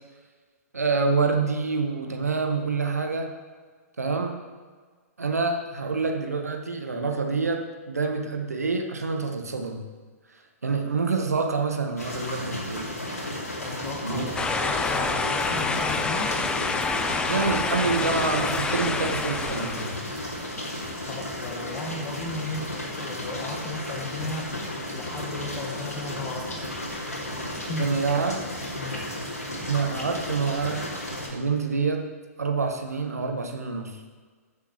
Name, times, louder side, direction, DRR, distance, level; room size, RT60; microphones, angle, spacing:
voice 1, 0.7-3.3 4.0-4.4 5.2-9.8 10.6-12.9 14.0-14.2 17.3-20.0 27.8-28.4 29.7-30.9 31.3-32.1 32.4-34.0, right 4 dB, 80° right, 4 dB, 1.4 m, -27 dB
sound 1, 12.0-31.3, left 1 dB, 80° left, 2.6 m, -34 dB
voice 2, 13.6-16.4 20.7-24.5 24.9-26.6 27.7-28.0 28.8-29.1, left 3 dB, 25° left, 0 dB, 1.3 m, -35 dB
sound 2, 14.4-20.1, left 4 dB, 10° left, 0.5 m, -27 dB
14.5 x 7.6 x 3.2 m, 1.5 s
figure-of-eight pair, 110°, 8 cm